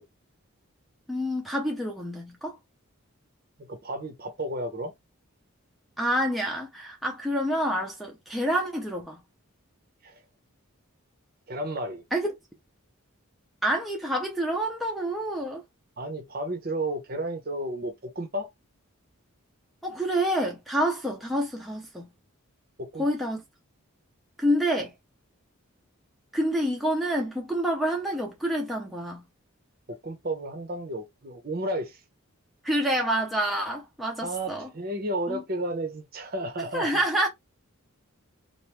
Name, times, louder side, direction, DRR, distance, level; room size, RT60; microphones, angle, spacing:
voice 1, 1.1-2.6 6.0-9.2 12.1-12.3 13.6-15.6 19.8-22.1 23.0-23.4 24.4-24.9 26.3-29.2 32.6-34.7 35.3-35.4 36.7-37.3, equal, ahead, 0.6 m, -27 dB
voice 2, 3.6-4.9 10.0-10.2 11.5-12.0 16.0-18.5 22.8-23.1 29.9-32.0 34.2-37.0, right 1 dB, 40° right, 0.7 m, -32 dB
3.0 x 2.6 x 3.3 m
head